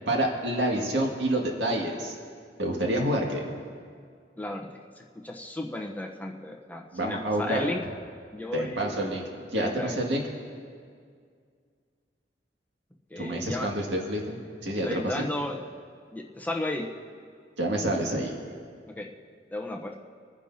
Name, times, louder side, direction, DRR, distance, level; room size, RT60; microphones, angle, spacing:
voice 1, 0.1-2.1 2.6-3.6 6.9-7.7 8.5-10.4 13.2-15.3 17.6-18.4, right 1 dB, 80° right, 0 dB, 2.0 m, -28 dB
voice 2, 4.4-4.7 5.2-7.8 8.3-9.0 9.5-10.0 13.1-13.7 14.8-15.6 16.1-16.9 18.9-19.1 19.5-19.9, left 1 dB, 10° left, 0 dB, 0.8 m, -33 dB
26.5 x 9.9 x 2.8 m, 2.1 s
head